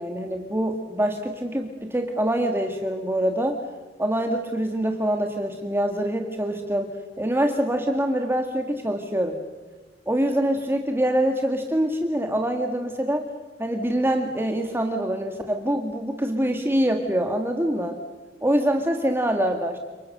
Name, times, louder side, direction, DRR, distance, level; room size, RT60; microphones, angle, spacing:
voice 1, 0.0-3.6 4.0-9.4 10.1-13.2 13.6-18.0 18.4-19.8, right 1 dB, 15° right, 4 dB, 1.9 m, -25 dB
30.0 x 28.0 x 6.7 m, 1.3 s
head